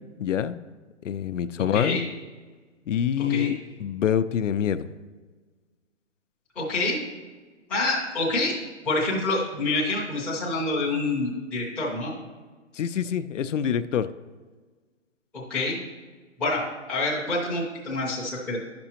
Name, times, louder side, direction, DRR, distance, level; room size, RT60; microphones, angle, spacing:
voice 1, 0.2-0.6 1.0-2.0 2.9-4.9 12.7-14.1, left 9 dB, 80° left, 12 dB, 0.5 m, -26 dB
voice 2, 1.7-2.0 3.2-3.5 6.6-7.0 7.7-8.5 8.8-12.1 15.3-15.8 16.4-18.6, left 2 dB, 5° left, -6 dB, 0.5 m, -27 dB
10.5 x 6.0 x 2.9 m, 1.4 s
hypercardioid pair, 150°, 37 cm